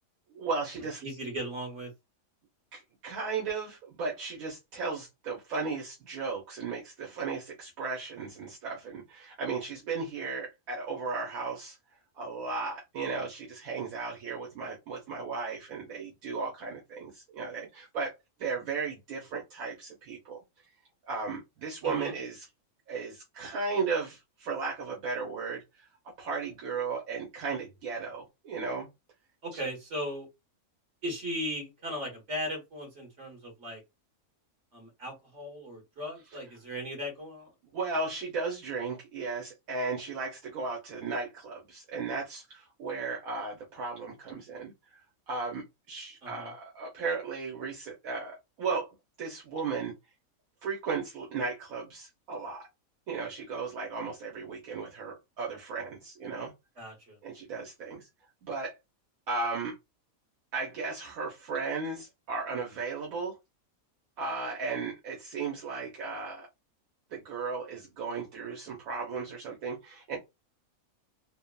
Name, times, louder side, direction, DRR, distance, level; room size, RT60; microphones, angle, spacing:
voice 1, 0.3-1.0 2.7-11.8 12.1-18.1 18.4-20.4 21.1-22.4 22.9-25.6 26.2-28.9 29.5-29.6 37.7-45.0 45.3-48.9 49.2-49.9 50.6-52.6 53.1-56.5 57.2-58.1 58.4-58.7 59.3-59.7 60.5-63.3 64.2-66.5 67.1-70.2, right 4 dB, 75° right, 1.2 m, -35 dB
voice 2, 1.0-1.9 21.8-22.1 29.4-30.3 31.0-33.8 34.7-37.5 46.2-46.5 56.8-57.2, equal, 55° right, 1.7 m, -37 dB
3.6 x 2.0 x 2.2 m
omnidirectional pair, 1.5 m